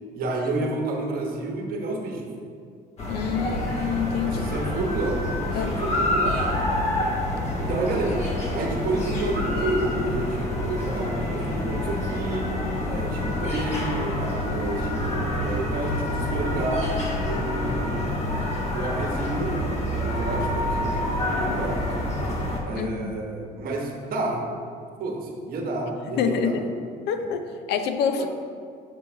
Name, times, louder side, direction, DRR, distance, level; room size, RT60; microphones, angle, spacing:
voice 1, 0.1-2.3 3.3-3.6 4.2-6.5 7.6-8.2 8.5-16.9 17.2-18.4 18.7-19.6 20.0-21.1 21.3-21.8 22.6-24.5 25.0-26.7 27.2-27.3 28.2-28.3, right 2 dB, 60° right, 0 dB, 1.1 m, -30 dB
sound 1, 3.0-22.6, left 1 dB, 40° left, 1.4 m, -27 dB
voice 2, 3.1-4.5 5.5-5.8 22.8-23.1 26.2-26.6 27.1-27.4 27.7-28.3, left 6 dB, 80° left, 7 dB, 0.5 m, -26 dB
6.9 x 3.1 x 5.6 m, 2.2 s
cardioid pair, 110°, 17 cm